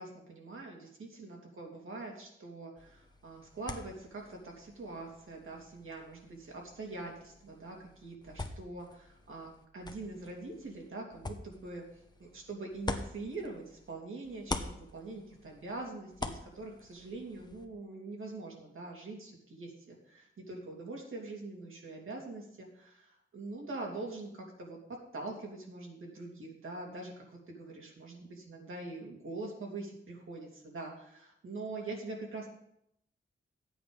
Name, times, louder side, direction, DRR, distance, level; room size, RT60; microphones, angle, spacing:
voice 1, 0.0-11.8 12.2-24.8 25.1-32.5, right 2 dB, 90° right, -1 dB, 3.0 m, -44 dB
sound 1, 2.8-13.9 14.2-17.7, left 2 dB, 20° left, 1.0 m, -45 dB
13.0 x 8.7 x 5.3 m, 0.75 s
wide cardioid pair, 120°, 20 cm